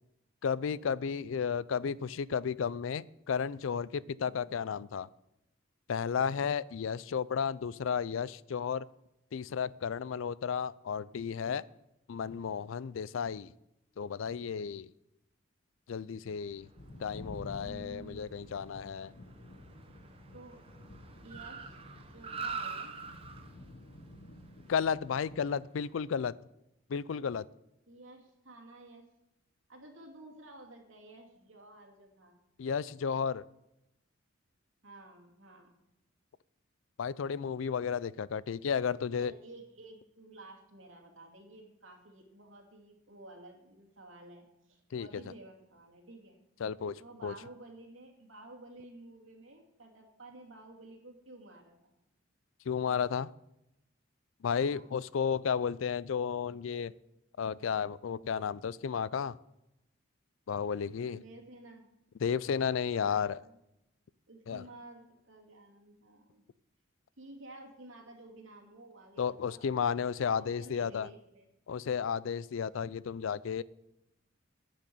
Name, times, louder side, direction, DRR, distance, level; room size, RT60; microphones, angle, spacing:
voice 1, 0.4-5.1 5.9-8.9 9.3-11.6 12.1-13.5 14.0-14.9 15.9-16.7 17.0-19.1 24.7-26.3 26.9-27.4 32.6-33.4 37.0-39.3 44.9-45.1 46.6-47.3 52.7-53.3 54.4-56.9 57.4-59.4 60.5-61.2 62.2-63.4 64.5-64.6 69.2-71.1 71.7-73.6, left 6 dB, 75° left, 20 dB, 0.4 m, -33 dB
voice 2, 4.2-4.5 17.6-18.2 20.3-20.6 21.2-21.8 22.1-22.9 27.9-29.1 29.7-32.4 34.8-35.7 39.2-46.4 47.0-51.9 54.6-54.9 61.2-61.9 62.9-63.6 64.3-66.4 67.2-69.8 70.4-71.5, right 2 dB, 80° right, 2 dB, 2.5 m, -52 dB
Car, 16.5-26.0, right 5 dB, 30° right, 0.8 m, -46 dB
sound 1, 16.8-25.4, left 1 dB, 55° left, 0.9 m, -51 dB
10.0 x 6.3 x 8.6 m, 0.88 s
head